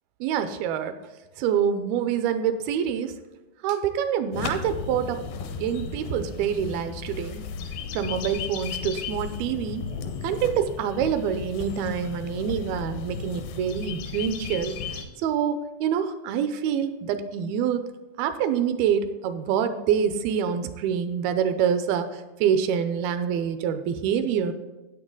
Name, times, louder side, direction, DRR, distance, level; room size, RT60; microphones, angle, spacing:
voice 1, 0.2-0.9 1.4-3.1 3.6-5.2 5.6-7.4 7.9-9.8 10.2-14.8 15.2-17.8 18.2-22.1 22.4-24.5, right 8 dB, 85° right, 10 dB, 2.4 m, -26 dB
sound 1, 4.3-15.0, left 6 dB, 75° left, 2.6 m, -35 dB
13.0 x 8.6 x 3.8 m, 1.1 s
omnidirectional pair, 4.5 m